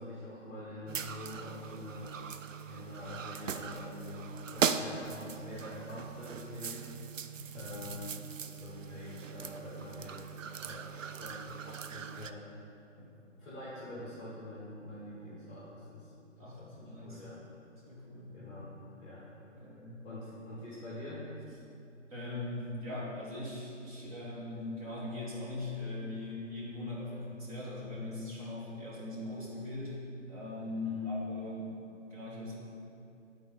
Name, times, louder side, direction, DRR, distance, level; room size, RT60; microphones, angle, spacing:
voice 1, 0.0-2.1 2.7-6.8 7.5-8.1 8.4-10.2 10.6-12.4 13.4-16.1 16.4-17.4 18.3-18.7 19.0-19.3 19.6-19.7 20.0-21.2 30.8-31.1, left 1 dB, 10° left, -9 dB, 1.2 m, -45 dB
sound 1, 0.9-12.3, right 7 dB, 80° right, 0.5 m, -39 dB
voice 2, 7.3-7.7 13.0-13.1 16.4-17.2 17.8-18.4 19.5-20.1 22.1-31.7 32.1-32.5, left 2 dB, 30° right, -6 dB, 1.5 m, -40 dB
8.7 x 3.9 x 5.3 m, 2.7 s
figure-of-eight pair, 135°, 38 cm